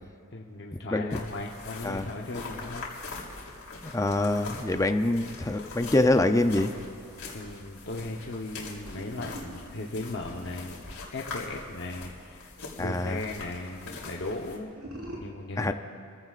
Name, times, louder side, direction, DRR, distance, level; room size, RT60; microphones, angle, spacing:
voice 1, 0.3-2.9 7.3-10.8 11.1-12.5 12.8-14.7 15.2-15.7, left 2 dB, 55° left, -1 dB, 1.0 m, -37 dB
sound 1, 1.1-14.6, left 3 dB, 75° left, 3.3 m, -42 dB
voice 2, 3.8-6.7 12.8-13.2 15.6-15.7, left 2 dB, 15° left, 7 dB, 0.5 m, -25 dB
sound 2, 8.9-12.7 14.6-15.2, right 1 dB, 85° right, 4.6 m, -45 dB
30.0 x 15.5 x 2.5 m, 2.3 s
head